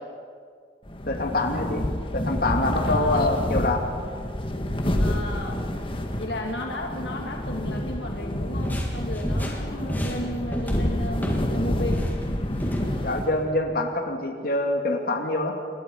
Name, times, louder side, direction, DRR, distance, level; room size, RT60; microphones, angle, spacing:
sound 1, 0.9-13.6, left 1 dB, 30° left, 1.9 m, -28 dB
voice 1, 1.1-1.8 2.1-3.8 13.0-15.5, left 2 dB, 55° left, 3 dB, 2.7 m, -25 dB
voice 2, 2.8-3.3 4.9-5.6 6.1-12.0, left 1 dB, 70° left, 1 dB, 2.3 m, -34 dB
sound 2, 8.6-11.5 11.8-12.9, equal, 10° left, 3.5 m, -30 dB
28.0 x 22.0 x 5.5 m, 2.1 s
head